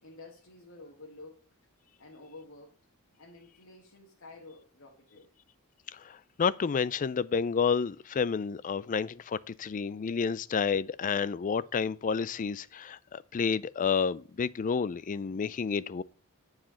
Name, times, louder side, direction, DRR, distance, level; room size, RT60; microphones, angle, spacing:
voice 1, 0.0-1.4 2.0-2.8 3.2-5.3, left 2 dB, 65° left, 1.7 m, -50 dB
voice 2, 5.9-16.0, left 6 dB, 35° left, 0.4 m, -30 dB
10.0 x 4.9 x 5.6 m
head